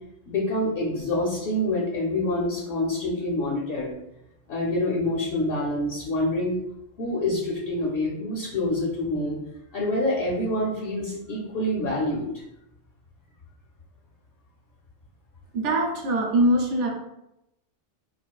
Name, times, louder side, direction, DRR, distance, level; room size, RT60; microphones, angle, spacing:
voice 1, 0.3-4.0 4.5-6.6 7.0-9.4 9.7-12.3, left 1 dB, 55° left, -4 dB, 0.8 m, -26 dB
voice 2, 15.5-16.9, right 1 dB, 75° right, 1 dB, 0.9 m, -22 dB
4.2 x 2.4 x 2.2 m, 0.86 s
omnidirectional pair, 1.2 m